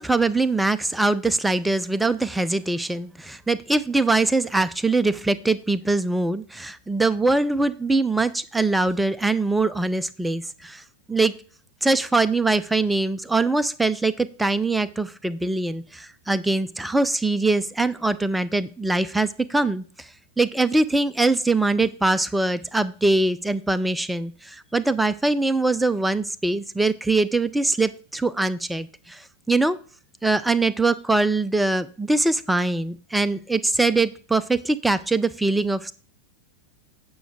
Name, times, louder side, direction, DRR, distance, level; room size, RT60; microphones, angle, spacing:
voice 1, 0.0-10.8 11.1-11.3 11.8-20.1 20.4-29.8 30.2-35.9, right 2 dB, 5° right, 13 dB, 0.6 m, -22 dB
9.2 x 6.3 x 4.8 m, 0.41 s
figure-of-eight pair, 90°, 0 cm